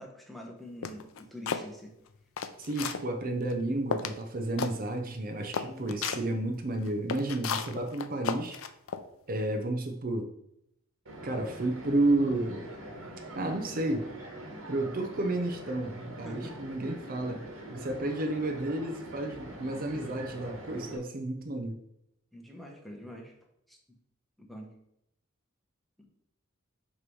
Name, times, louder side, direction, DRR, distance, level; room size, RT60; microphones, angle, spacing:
voice 1, 0.0-1.9 5.6-6.2 16.2-16.6 22.3-23.3 23.7-23.8 24.4-24.7 26.0-26.1, equal, ahead, 1 dB, 0.9 m, -45 dB
sound 1, 0.8-1.7 2.2-3.1 3.5-3.6 3.9-4.2 4.6-4.8 5.1-5.2 5.5-6.2 6.8-9.0, left 6 dB, 70° left, 0.5 m, -33 dB
voice 2, 2.6-8.6 9.3-10.3 11.2-12.7 13.3-14.1 14.7-21.8, right 2 dB, 45° right, 4 dB, 0.6 m, -31 dB
sound 2, 11.1-21.0, right 1 dB, 75° right, 1.4 m, -44 dB
6.5 x 3.1 x 5.3 m, 0.78 s
head